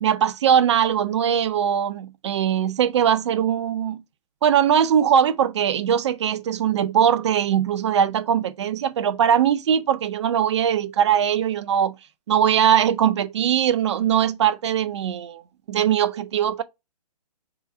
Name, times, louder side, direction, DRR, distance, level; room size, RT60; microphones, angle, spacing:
voice 1, 0.0-4.0 4.4-11.9 12.3-15.4 15.7-16.6, right 9 dB, 45° right, 0.6 m, -21 dB
3.5 x 3.3 x 4.1 m
hypercardioid pair, 140°, 21 cm